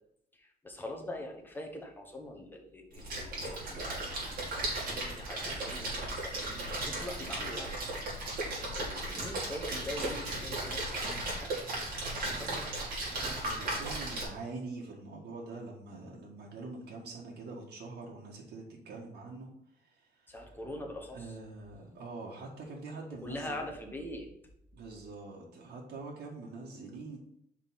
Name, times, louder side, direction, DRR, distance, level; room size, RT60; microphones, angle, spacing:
voice 1, 0.3-7.8 8.8-11.5 11.9-12.7 20.3-21.4 21.7-22.0 23.2-24.3, left 1 dB, 10° left, 2 dB, 1.2 m, -44 dB
Splash splatter, 2.9-14.2, right 2 dB, 60° right, 2.9 m, -36 dB
voice 2, 13.3-19.5 19.8-20.4 21.1-23.6 24.7-27.2, right 3 dB, 90° right, -2 dB, 1.5 m, -44 dB
5.5 x 4.6 x 5.6 m, 0.73 s
wide cardioid pair, 165°, 17 cm